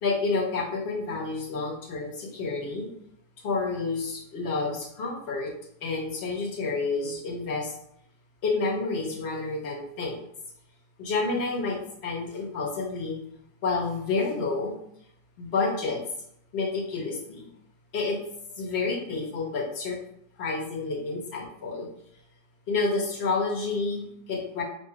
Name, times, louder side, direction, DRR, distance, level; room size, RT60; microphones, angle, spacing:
voice 1, 0.0-2.9 3.4-5.5 5.8-7.7 8.4-10.2 11.0-13.2 13.6-14.7 15.4-16.0 16.5-17.5 17.9-18.2 18.5-20.0 20.4-21.9 22.7-24.6, left 3 dB, 40° left, -2 dB, 1.1 m, -29 dB
4.3 x 2.6 x 4.6 m, 0.74 s
omnidirectional pair, 2.0 m